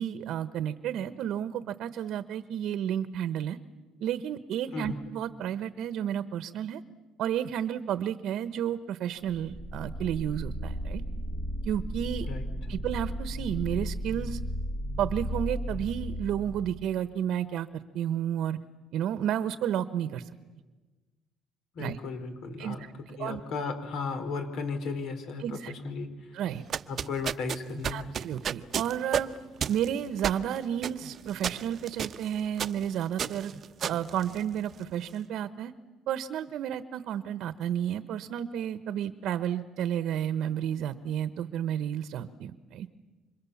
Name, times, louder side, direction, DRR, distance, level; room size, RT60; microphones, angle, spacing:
voice 1, 0.0-3.6 4.0-6.8 7.2-11.0 11.6-12.3 12.7-14.4 15.0-17.7 17.9-18.6 18.9-20.3 21.8-22.0 22.6-23.4 25.4-25.7 26.3-26.6 27.9-29.3 29.7-33.5 33.9-35.7 36.1-42.9, right 10 dB, 65° right, 13 dB, 1.1 m, -31 dB
sound 1, 9.3-17.0, equal, 25° left, 2.2 m, -35 dB
voice 2, 21.7-22.9 23.2-26.1 26.9-28.1, left 4 dB, 60° left, 7 dB, 4.8 m, -35 dB
sound 2, 26.5-34.9, right 8 dB, 45° right, 0.9 m, -34 dB
29.5 x 26.0 x 7.2 m, 1.3 s
cardioid pair, 110°, 0 cm